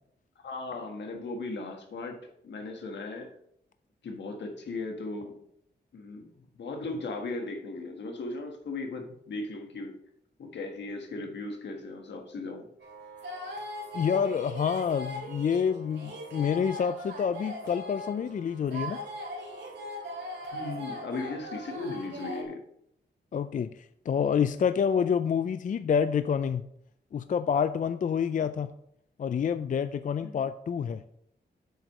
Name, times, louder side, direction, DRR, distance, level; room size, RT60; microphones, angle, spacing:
voice 1, 0.4-2.2 2.4-3.3 4.0-5.3 5.9-6.3 6.6-9.9 10.4-12.7 20.5-22.6 30.2-30.4, left 3 dB, 80° left, 3 dB, 1.5 m, -37 dB
sound 1, 12.8-22.4, equal, 85° right, 3.0 m, -40 dB
voice 2, 13.9-19.0 23.3-26.7 27.1-28.7 29.2-31.0, left 7 dB, 45° left, 11 dB, 0.4 m, -28 dB
8.0 x 4.6 x 6.5 m, 0.75 s
cardioid pair, 80°, 18 cm